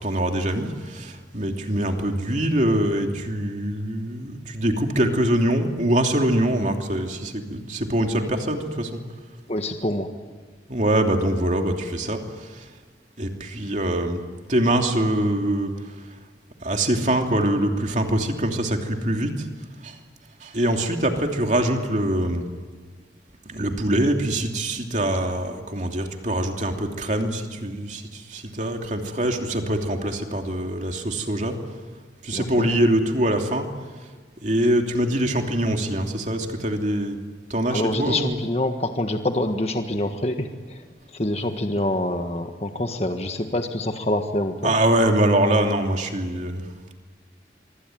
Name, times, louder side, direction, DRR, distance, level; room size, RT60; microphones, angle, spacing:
voice 1, 0.0-9.0 10.7-12.6 13.2-14.2 14.5-15.7 16.6-19.5 19.8-20.0 20.4-22.4 23.5-31.6 32.2-33.7 34.4-37.2 37.5-38.4 44.6-46.6, right 1 dB, 45° right, 3 dB, 2.9 m, -23 dB
voice 2, 9.5-10.1 32.3-32.7 37.7-40.8 41.1-44.7, left 1 dB, 35° left, 5 dB, 1.5 m, -26 dB
25.5 x 24.5 x 9.3 m, 1.4 s
head